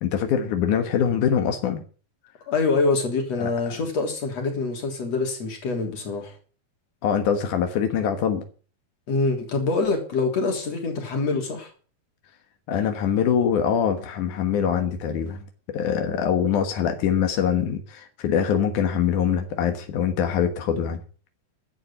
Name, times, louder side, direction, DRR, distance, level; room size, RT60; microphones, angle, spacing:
voice 1, 0.0-1.8 3.4-3.5 7.0-8.4 12.7-15.4 15.7-21.0, left 8 dB, 90° left, 2.9 m, -23 dB
voice 2, 2.5-6.4 9.1-11.7, left 3 dB, 55° left, 4.4 m, -25 dB
11.5 x 7.8 x 10.0 m
omnidirectional pair, 3.4 m